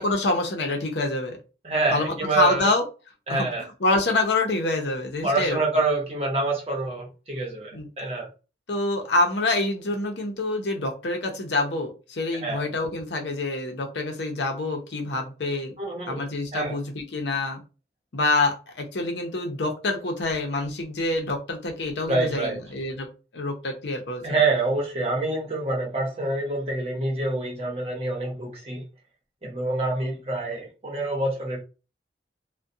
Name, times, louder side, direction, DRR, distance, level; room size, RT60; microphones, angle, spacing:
voice 1, 0.0-1.4 1.9-2.8 3.3-3.5 3.8-5.6 7.7-7.9 8.7-15.7 16.1-17.6 18.1-24.2, left 2 dB, 80° left, 0.7 m, -26 dB
voice 2, 1.6-2.7 3.3-3.6 5.2-7.7 8.0-8.3 12.4-12.6 15.8-16.2 16.5-16.8 22.1-22.6 24.2-28.8 29.4-31.6, right 3 dB, 35° right, 0.9 m, -26 dB
2.3 x 2.2 x 2.6 m
head